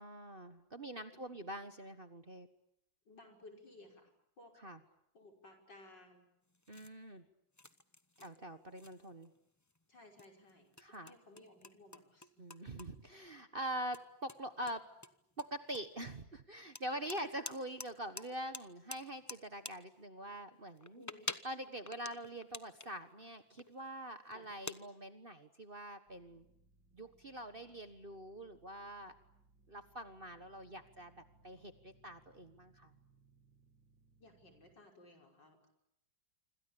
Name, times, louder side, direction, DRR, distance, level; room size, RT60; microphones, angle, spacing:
voice 1, 0.0-2.5 4.6-4.8 6.7-7.2 8.2-9.3 10.8-11.2 12.4-14.9 15.4-21.0 21.4-26.4 26.9-29.1 29.7-32.9, right 1 dB, 30° right, 9 dB, 1.4 m, -44 dB
voice 2, 1.1-1.4 3.1-4.5 5.1-6.3 9.9-12.5 21.0-21.3 24.3-24.5 34.2-35.7, left 2 dB, 70° left, 3 dB, 6.2 m, -59 dB
sound 1, 6.5-6.9 7.5-8.4 8.7-9.4 9.7-9.8 10.2-12.9 13.2-13.4 13.9-14.0 14.3-16.1 16.8-17.9 18.2-18.3 18.5-19.7 20.7-23.0 23.6-23.9 24.3-24.8, left 2 dB, 15° left, 0.6 m, -47 dB
sound 2, 26.1-34.8, right 3 dB, 80° right, 3.5 m, -69 dB
26.5 x 26.0 x 8.6 m, 0.78 s
omnidirectional pair, 2.0 m